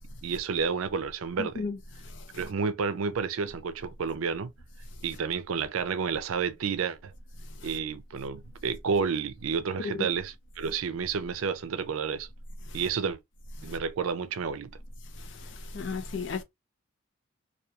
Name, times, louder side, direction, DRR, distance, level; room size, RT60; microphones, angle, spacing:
voice 1, 0.2-1.6 2.3-4.5 5.0-7.1 7.6-12.3 12.7-13.2 13.6-14.7, right 5 dB, 85° right, 0.4 m, -30 dB
voice 2, 1.4-1.7 15.7-16.4, left 4 dB, 60° left, 0.5 m, -33 dB
2.8 x 2.3 x 2.2 m
head